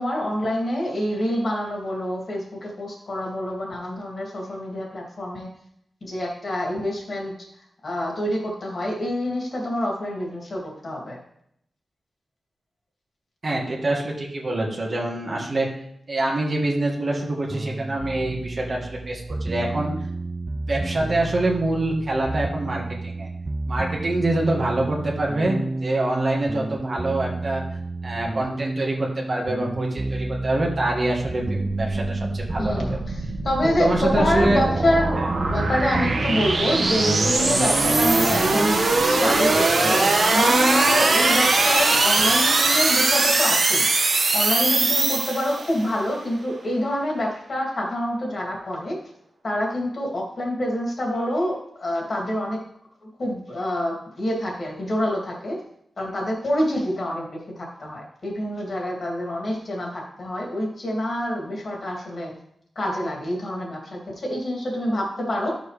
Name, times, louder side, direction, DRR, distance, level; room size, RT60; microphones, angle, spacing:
voice 1, 0.0-5.5 6.0-7.3 7.8-11.2 32.6-33.0 33.4-38.7 39.1-43.9 44.3-49.0 49.4-52.6 53.2-55.6 56.0-57.3 57.6-62.3 62.8-65.5, left 1 dB, 45° left, -2 dB, 2.6 m, -26 dB
voice 2, 13.4-15.7 16.1-19.9 20.7-23.3 23.7-27.6 28.0-33.0 33.8-34.6 35.1-35.3, right 2 dB, 40° right, -1 dB, 1.5 m, -25 dB
sound 1, 17.5-36.1, right 2 dB, 25° right, 0.3 m, -31 dB
sound 2, 31.3-45.8, right 3 dB, 55° right, 1.3 m, -21 dB
13.0 x 6.6 x 3.4 m, 0.73 s
wide cardioid pair, 170°, 0 cm